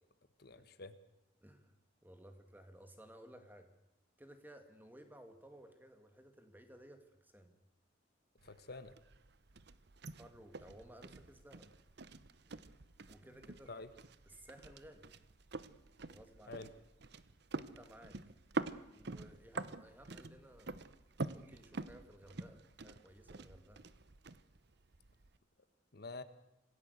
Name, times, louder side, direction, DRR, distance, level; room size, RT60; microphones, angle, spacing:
voice 1, 0.4-1.0 8.4-9.0 13.7-13.9 16.5-16.7 25.9-26.2, left 3 dB, 55° left, 12 dB, 1.2 m, -48 dB
voice 2, 1.4-1.8 2.0-3.7 4.2-7.5 10.1-11.7 13.1-13.7 14.3-15.1 16.1-16.7 17.5-18.2 18.9-20.8 21.3-23.9, right 1 dB, 10° right, 7 dB, 2.2 m, -57 dB
sound 1, 8.4-25.4, right 3 dB, 60° right, 0.9 m, -47 dB
25.5 x 16.5 x 8.1 m, 0.86 s
head